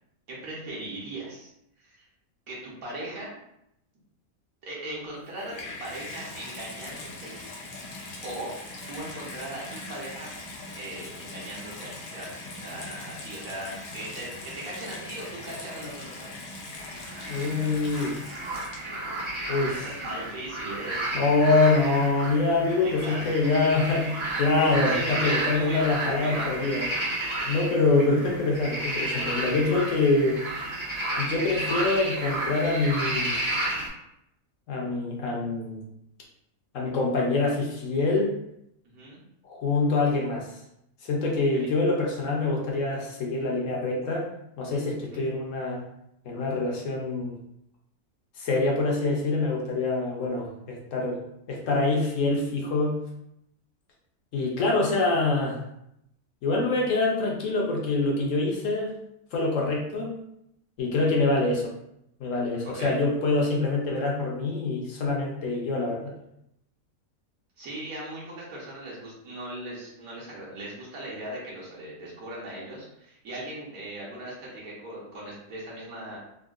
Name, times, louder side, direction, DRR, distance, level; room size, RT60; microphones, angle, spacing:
voice 1, 0.3-1.5 1.8-2.1 2.5-3.3 4.6-7.4 8.2-8.5 8.9-10.3 10.7-12.3 12.6-16.4 19.7-21.5 22.7-23.3 24.9-26.7 38.8-39.2 41.5-41.7 45.1-45.2 61.0-61.1 62.6-63.0 67.6-76.2, right 1 dB, 65° right, -5 dB, 1.3 m, -39 dB
Water tap faucet / Bathtub (filling or washing), 5.1-19.2 20.0-20.1, left 2 dB, 85° left, 1.2 m, -41 dB
sound 1, 16.8-33.9, right 1 dB, 35° right, 0.4 m, -32 dB
voice 2, 17.3-18.2 19.5-19.8 21.1-26.8 27.5-30.4 31.2-33.3 34.7-35.8 36.7-38.3 39.4-40.5 41.0-44.3 44.6-45.8 46.3-47.4 48.4-51.2 51.5-53.0 54.3-55.6 56.4-58.9 59.3-60.2 60.8-61.7 62.2-66.1, left 3 dB, 65° left, -2 dB, 0.9 m, -25 dB
3.6 x 2.2 x 2.3 m, 0.79 s
omnidirectional pair, 1.6 m